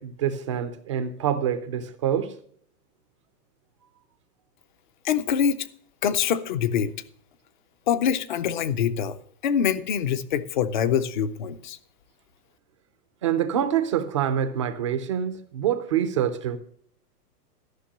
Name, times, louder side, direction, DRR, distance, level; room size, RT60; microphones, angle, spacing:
voice 1, 0.0-2.3 13.2-16.6, right 9 dB, 20° right, 0.4 m, -26 dB
voice 2, 5.0-5.7 6.0-6.9 7.9-9.2 9.4-11.8, left 8 dB, 30° left, 0.5 m, -24 dB
13.0 x 5.9 x 7.2 m
supercardioid pair, 160°, 48 cm